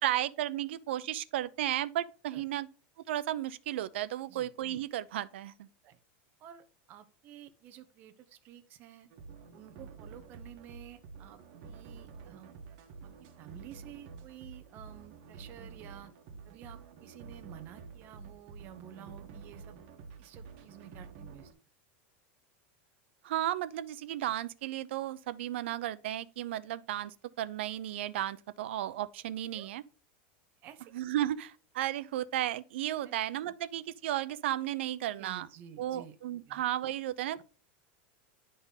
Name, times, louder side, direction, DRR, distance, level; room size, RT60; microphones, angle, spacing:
voice 1, 0.0-2.7 3.1-5.7 23.2-29.8 30.9-35.5 35.8-37.4, right 13 dB, 85° right, 0.6 m, -34 dB
voice 2, 6.4-9.1 9.5-12.5 13.0-16.1 16.4-19.8 20.2-21.5 29.5-29.7 30.6-30.9 33.0-33.2 33.4-33.5 35.2-36.1 36.5-36.6 37.4-37.5, right 10 dB, 30° right, 0.8 m, -52 dB
sound 1, 9.1-21.5, right 5 dB, 45° right, 1.4 m, -49 dB
11.0 x 3.9 x 4.1 m
supercardioid pair, 175°, 6 cm